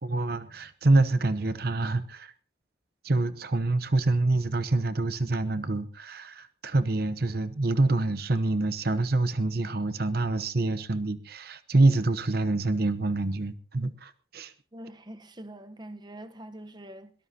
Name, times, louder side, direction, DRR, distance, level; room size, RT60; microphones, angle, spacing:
voice 1, 0.0-2.3 3.0-14.5, right 2 dB, 55° right, 0.9 m, -26 dB
voice 2, 14.7-17.1, right 1 dB, 25° right, 1.0 m, -44 dB
22.0 x 18.0 x 2.9 m
head